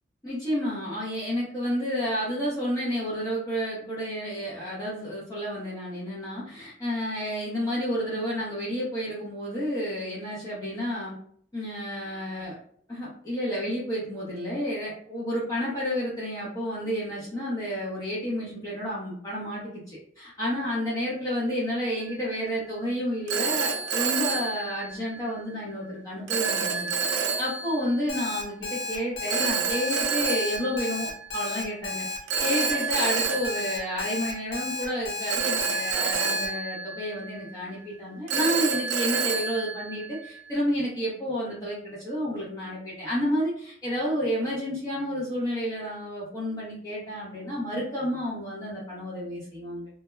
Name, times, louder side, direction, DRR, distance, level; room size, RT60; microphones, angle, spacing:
voice 1, 0.2-11.1 11.5-12.6 12.9-27.0 27.4-32.0 32.4-49.9, equal, 20° left, -7 dB, 0.6 m, -30 dB
Telephone, 22.0-22.3 23.3-25.3 26.3-28.0 29.3-31.5 32.3-34.6 35.3-37.6 38.3-40.5, right 5 dB, 65° right, 0.4 m, -29 dB
Alarm, 28.1-36.5, left 3 dB, 90° left, 0.8 m, -33 dB
2.2 x 2.0 x 3.0 m, 0.62 s
head